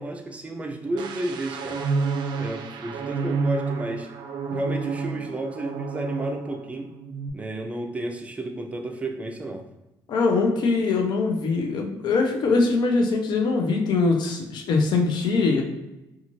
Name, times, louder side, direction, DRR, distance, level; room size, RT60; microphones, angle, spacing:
voice 1, 0.0-1.8 2.3-4.1 4.5-6.9 7.3-9.6, right 1 dB, 15° right, 3 dB, 0.5 m, -32 dB
sound 1, 1.0-6.7 7.0-7.3, right 4 dB, 75° right, 0.4 m, -29 dB
voice 2, 10.1-15.6, left 3 dB, 70° left, 2 dB, 0.6 m, -22 dB
2.6 x 2.4 x 3.0 m, 0.97 s
cardioid pair, 90°, 8 cm